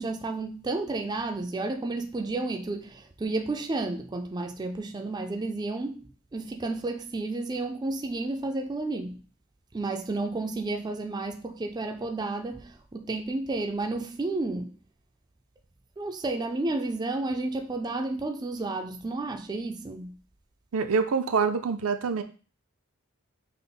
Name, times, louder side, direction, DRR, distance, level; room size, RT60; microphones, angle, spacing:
voice 1, 0.0-9.2 9.7-14.8 16.0-20.2, right 2 dB, 20° right, 0.3 m, -31 dB
voice 2, 20.7-22.2, right 5 dB, 80° right, 0.5 m, -25 dB
5.6 x 2.1 x 3.9 m
head